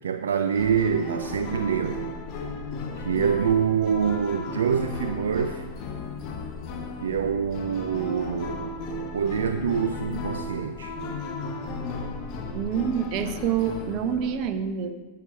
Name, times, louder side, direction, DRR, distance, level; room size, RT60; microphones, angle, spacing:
voice 1, 0.0-2.1 3.0-5.6 7.0-8.8 9.1-11.0, right 7 dB, 65° right, 8 dB, 0.4 m, -26 dB
sound 1, 0.5-14.5, left 3 dB, 40° left, 1.4 m, -35 dB
voice 2, 12.5-14.9, right 8 dB, 40° right, 8 dB, 0.9 m, -27 dB
11.0 x 8.5 x 4.4 m, 1.2 s
figure-of-eight pair, 90°, 0 cm